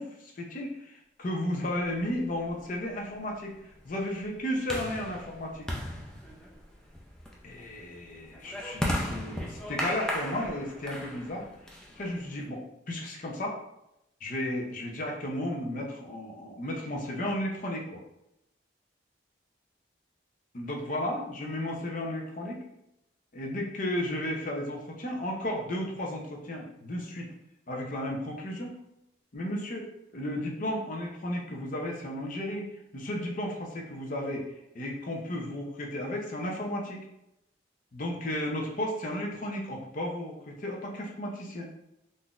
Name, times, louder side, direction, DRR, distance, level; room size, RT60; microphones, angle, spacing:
voice 1, 0.0-3.5 3.8-5.7 7.4-11.4 12.0-12.6 12.9-13.6 14.2-18.0 20.5-22.6 23.3-27.3 27.7-28.7 29.3-32.7 32.9-34.4 34.7-37.0 37.9-41.7, left 1 dB, 50° left, 0 dB, 0.6 m, -34 dB
sound 1, 2.0-12.4, equal, 5° left, 0.4 m, -37 dB
3.7 x 2.6 x 2.4 m, 0.85 s
head